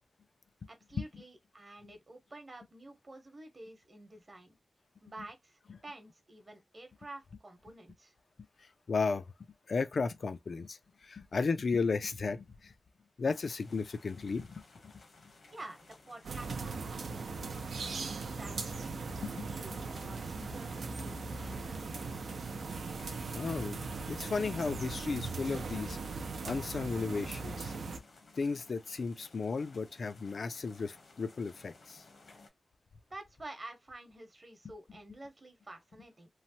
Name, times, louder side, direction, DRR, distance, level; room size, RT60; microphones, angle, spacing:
voice 1, 0.7-4.6 5.0-8.1 15.5-17.2 17.8-22.1 33.1-36.3, right 2 dB, 40° right, 0.9 m, -50 dB
voice 2, 8.6-9.3 9.7-12.7 13.2-14.9 15.2-15.3 19.2-19.5 23.0-23.8 24.1-27.7 28.4-32.0, left 4 dB, 65° left, 0.3 m, -35 dB
sound 1, 13.3-32.5, left 3 dB, 80° left, 1.0 m, -59 dB
sound 2, 16.2-28.0, right 4 dB, 85° right, 0.5 m, -39 dB
3.1 x 2.1 x 2.7 m
wide cardioid pair, 95°, 0 cm